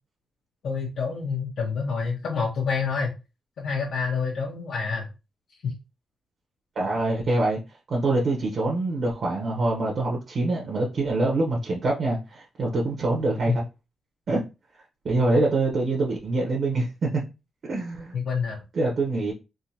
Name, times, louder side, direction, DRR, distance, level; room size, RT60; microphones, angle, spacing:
voice 1, 0.6-3.1 3.6-5.1 5.6-5.8 13.5-13.6 18.1-18.6, left 5 dB, 75° left, 0.9 m, -27 dB
voice 2, 6.8-7.6 7.9-13.6 14.3-14.4 15.0-17.2 17.7-18.2 18.7-19.3, right 2 dB, 50° right, 1.0 m, -25 dB
3.6 x 2.7 x 2.8 m
wide cardioid pair, 135°, 0 cm